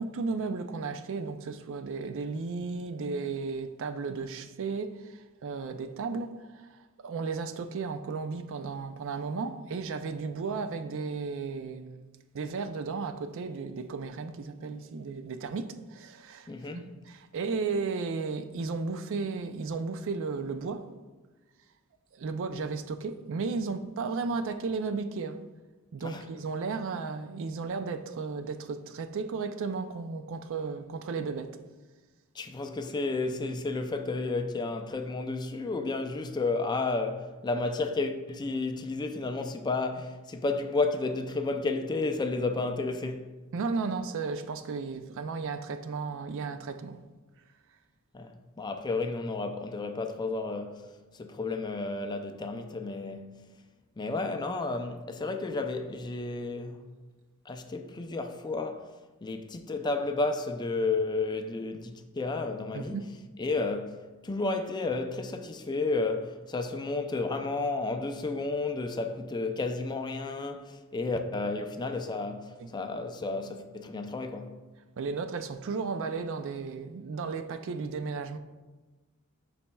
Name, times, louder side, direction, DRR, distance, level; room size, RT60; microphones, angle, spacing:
voice 1, 0.0-12.0 12.3-16.5 17.1-20.9 22.1-25.4 25.9-31.6 43.5-47.0 62.7-63.1 72.6-72.7 75.0-78.4, right 4 dB, 60° right, 0.4 m, -34 dB
voice 2, 16.5-16.9 26.0-26.3 32.3-43.3 48.1-50.8 51.1-53.5 54.0-56.8 57.5-58.9 59.2-63.0 63.4-74.5, left 3 dB, 20° left, 0.4 m, -32 dB
11.0 x 4.2 x 2.3 m
head